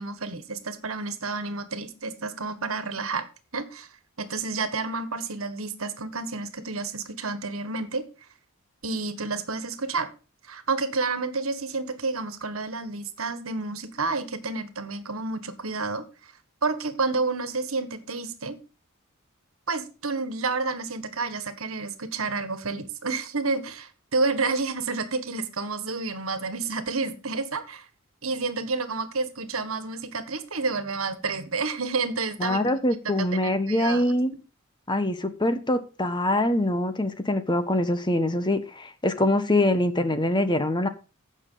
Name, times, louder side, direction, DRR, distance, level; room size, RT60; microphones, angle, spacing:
voice 1, 0.0-3.3 3.5-3.9 4.2-8.0 8.8-10.1 10.5-16.3 16.6-18.6 19.7-27.9 28.2-32.7 33.0-33.1 33.4-34.1, right 3 dB, 70° right, 12 dB, 1.6 m, -30 dB
voice 2, 32.4-34.3 34.9-40.9, left 1 dB, 20° left, 10 dB, 1.1 m, -24 dB
15.5 x 6.6 x 3.9 m, 0.33 s
head